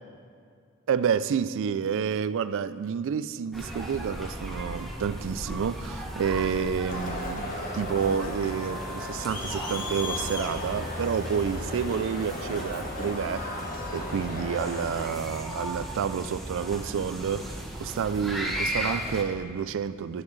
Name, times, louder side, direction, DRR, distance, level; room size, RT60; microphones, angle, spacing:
voice 1, 0.9-13.6 13.9-20.2, right 7 dB, 60° right, 0.3 m, -29 dB
sound 1, 3.5-19.2, equal, ahead, 1.0 m, -36 dB
Crowd, 6.9-15.1, left 1 dB, 40° left, 1.2 m, -35 dB
10.5 x 9.7 x 3.2 m
head